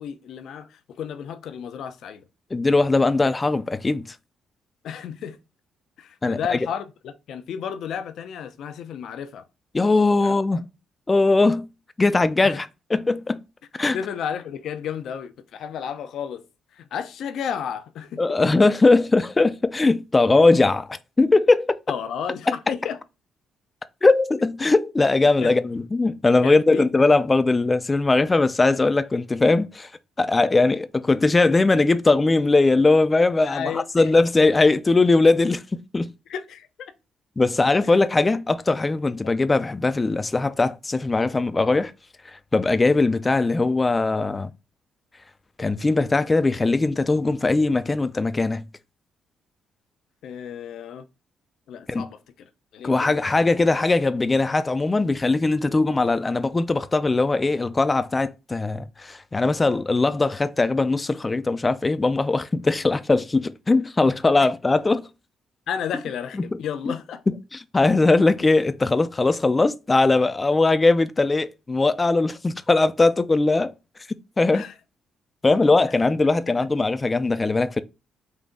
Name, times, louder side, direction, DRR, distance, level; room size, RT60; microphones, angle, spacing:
voice 1, 0.0-2.2 4.8-5.4 6.0-9.4 10.2-10.6 12.4-12.6 13.9-16.4 16.7-18.4 21.9-23.0 25.4-25.5 26.4-27.1 33.4-34.1 36.3-36.9 37.8-37.9 39.2-39.3 50.2-51.1 51.7-53.3 64.4-64.5 65.7-67.2 74.5-74.7, left 8 dB, 75° left, 0.5 m, -33 dB
voice 2, 2.5-4.2 6.2-6.6 9.7-10.6 11.1-11.7 12.0-13.4 13.7-14.0 18.2-21.8 24.0-29.9 30.2-36.1 37.4-41.9 42.2-44.5 45.6-48.6 51.9-52.0 52.8-65.0 66.3-66.4 67.3-73.7 74.4-74.7 75.4-77.8, left 3 dB, 25° left, 0.4 m, -20 dB
4.0 x 2.8 x 3.5 m
cardioid pair, 90°, 0 cm